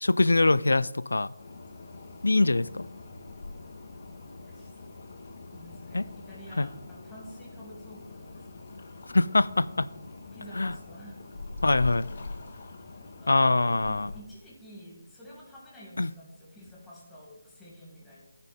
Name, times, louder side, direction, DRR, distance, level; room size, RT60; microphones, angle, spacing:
voice 1, 0.0-1.3 2.2-2.8 5.9-6.0 6.6-6.7 9.1-9.9 10.6-10.7 11.6-12.1 13.3-14.1 16.0-16.1, left 2 dB, 70° left, 18 dB, 0.3 m, -23 dB
sound 1, 1.4-14.2, left 2 dB, 45° left, 1.1 m, -43 dB
voice 2, 5.5-8.5 10.3-11.2 12.9-18.2, equal, 5° left, -6 dB, 2.6 m, -49 dB
14.5 x 5.3 x 3.7 m, 0.97 s
figure-of-eight pair, 155°, 0 cm